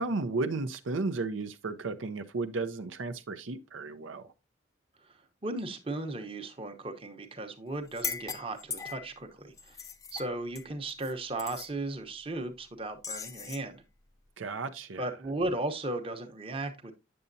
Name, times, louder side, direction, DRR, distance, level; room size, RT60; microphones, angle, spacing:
voice 1, 0.0-4.3 14.4-15.1, right 3 dB, 85° right, 0.6 m, -34 dB
voice 2, 5.0-9.8 10.1-13.8 15.0-16.9, right 2 dB, 30° right, 0.9 m, -36 dB
sound 1, 7.9-9.2 9.6-11.1 11.4-11.7 13.0-13.7, left 6 dB, 15° left, 0.4 m, -39 dB
8.6 x 6.8 x 2.6 m
head